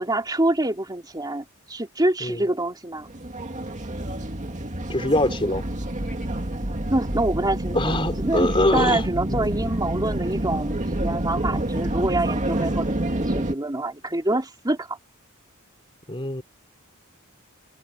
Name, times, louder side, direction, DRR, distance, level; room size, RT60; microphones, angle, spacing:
voice 1, 0.0-3.1 6.9-15.0, right 2 dB, 20° right, 2.7 m, -26 dB
sound 1, 3.0-13.5, right 1 dB, 35° right, 2.2 m, -28 dB
voice 2, 4.9-5.6 7.7-9.0 9.3-9.4 16.1-16.4, left 1 dB, 25° left, 3.7 m, -23 dB
head